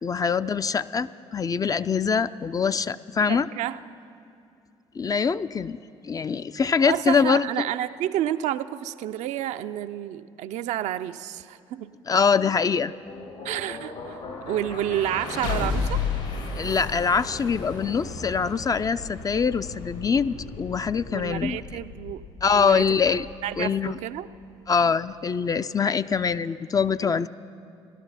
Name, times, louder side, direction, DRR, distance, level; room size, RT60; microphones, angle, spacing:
voice 1, 0.0-3.5 5.0-5.8 6.0-7.7 12.1-12.9 16.6-21.6 22.4-23.3 23.6-24.0 24.7-27.3, left 6 dB, 30° left, 13 dB, 0.4 m, -24 dB
voice 2, 3.3-3.8 6.9-11.9 13.4-16.0 21.1-22.3 22.5-23.0 23.4-24.3 27.0-27.2, right 12 dB, 70° right, 11 dB, 0.4 m, -30 dB
sound 1, 12.7-24.5, left 4 dB, 75° left, 2.3 m, -34 dB
16.5 x 12.5 x 5.6 m, 2.5 s
supercardioid pair, 60°, 12 cm